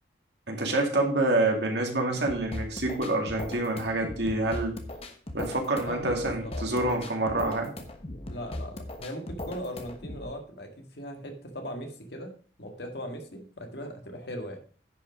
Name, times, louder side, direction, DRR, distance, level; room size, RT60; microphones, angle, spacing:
voice 1, 0.5-4.8 5.3-7.7, right 2 dB, 60° right, 2 dB, 2.3 m, -27 dB
sound 1, 2.3-10.3, left 1 dB, 30° left, 1.2 m, -38 dB
voice 2, 5.8-7.0 8.3-14.6, equal, 55° left, 3 dB, 1.9 m, -39 dB
10.5 x 5.6 x 5.0 m, 0.41 s
head